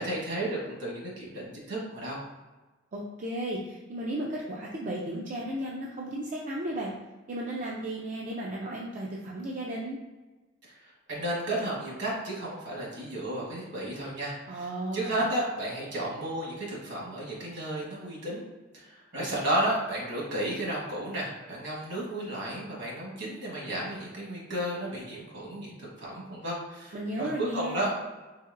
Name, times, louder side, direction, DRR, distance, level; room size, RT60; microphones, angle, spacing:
voice 1, 0.0-2.2 10.7-18.4 18.7-28.0, right 1 dB, 65° right, -4 dB, 1.4 m, -33 dB
voice 2, 2.9-6.9 7.3-10.0 14.5-15.1 26.9-27.9, right 1 dB, 40° right, -4 dB, 0.4 m, -34 dB
4.1 x 2.9 x 2.5 m, 1.2 s
head